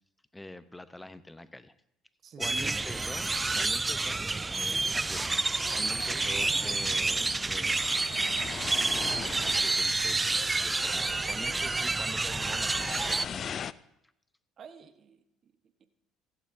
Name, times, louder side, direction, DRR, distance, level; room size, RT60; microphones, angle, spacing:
voice 1, 0.3-1.7 2.4-3.3 3.6-4.2 4.5-5.3 5.7-7.9 9.2-13.6, left 1 dB, 10° left, 13 dB, 0.8 m, -45 dB
voice 2, 2.2-2.9 14.6-15.5 15.8-15.9, right 6 dB, 45° right, 8 dB, 1.2 m, -49 dB
sound 1, 2.4-13.3, right 3 dB, 20° right, 0.3 m, -29 dB
sound 2, 5.0-13.7, left 8 dB, 45° left, 0.4 m, -42 dB
16.0 x 15.5 x 2.7 m, 0.81 s
supercardioid pair, 85°, 0 cm